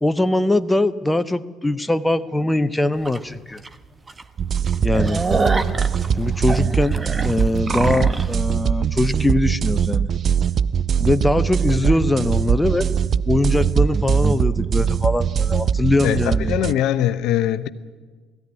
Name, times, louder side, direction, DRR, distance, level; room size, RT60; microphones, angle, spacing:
voice 1, 0.0-3.6 4.8-5.2 6.2-7.0 7.2-10.1 11.0-12.9 13.3-16.5, left 2 dB, 10° left, 12 dB, 0.9 m, -21 dB
sound 1, 3.1-3.2 3.6-3.7 4.1-4.2 4.6-8.3, right 3 dB, 20° right, 1.2 m, -25 dB
sound 2, 4.4-16.7, right 7 dB, 45° right, 0.5 m, -21 dB
voice 2, 16.0-17.7, left 11 dB, 65° left, 12 dB, 0.7 m, -22 dB
18.5 x 15.0 x 9.6 m, 1.4 s
hypercardioid pair, 55°, 0 cm